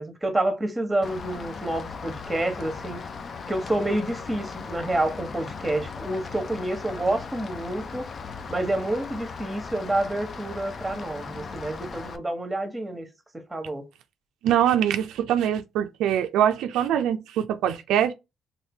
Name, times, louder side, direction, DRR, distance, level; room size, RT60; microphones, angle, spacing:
voice 1, 0.0-3.0 3.5-8.1 8.5-13.1 13.3-13.9, right 1 dB, 15° right, 1.0 m, -28 dB
Rain, 1.0-12.2, left 5 dB, 45° left, 0.5 m, -38 dB
voice 2, 14.4-18.1, right 10 dB, 85° right, 0.3 m, -23 dB
2.8 x 2.5 x 3.5 m
cardioid pair, 90°, 0 cm